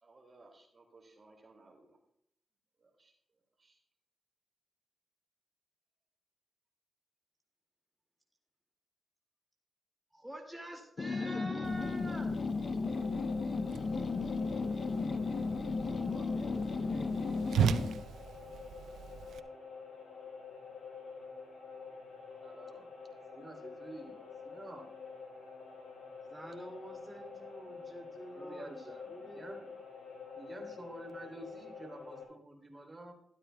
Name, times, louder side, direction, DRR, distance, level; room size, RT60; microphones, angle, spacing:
voice 1, 0.0-2.0 2.8-3.1 3.6-3.8 15.6-17.2, right 2 dB, 45° right, 2 dB, 2.3 m, -58 dB
voice 2, 10.1-12.3 26.3-28.7 29.1-29.7 30.9-31.0, right 1 dB, 5° right, 1 dB, 2.1 m, -46 dB
sound 1, 11.0-18.0, left 4 dB, 50° left, 0.6 m, -34 dB
Whoosh swoosh swish, 11.6-19.4, right 8 dB, 80° right, 0.4 m, -38 dB
sound 2, 12.8-32.2, left 5 dB, 70° left, 4.2 m, -48 dB
voice 3, 22.4-22.9 23.3-24.9 28.3-29.7 30.3-33.1, right 1 dB, 25° right, 2 dB, 3.0 m, -49 dB
13.0 x 12.5 x 2.2 m, 0.71 s
cardioid pair, 55°, 0 cm